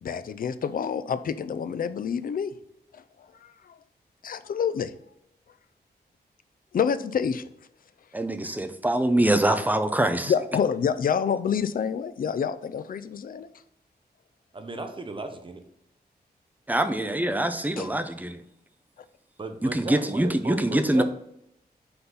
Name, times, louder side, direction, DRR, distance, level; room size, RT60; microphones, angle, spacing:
voice 1, 0.0-2.5 2.9-3.0 3.4-3.8 4.2-5.0 6.7-7.5 10.3-13.5 17.8-17.9, left 7 dB, 60° left, 12 dB, 0.5 m, -27 dB
voice 2, 8.1-10.3 16.7-18.4 19.6-21.0, right 1 dB, 10° right, 8 dB, 0.6 m, -24 dB
voice 3, 14.5-15.6 19.4-21.0, right 2 dB, 30° right, 7 dB, 0.9 m, -35 dB
5.8 x 3.9 x 5.6 m, 0.78 s
wide cardioid pair, 125°, 17 cm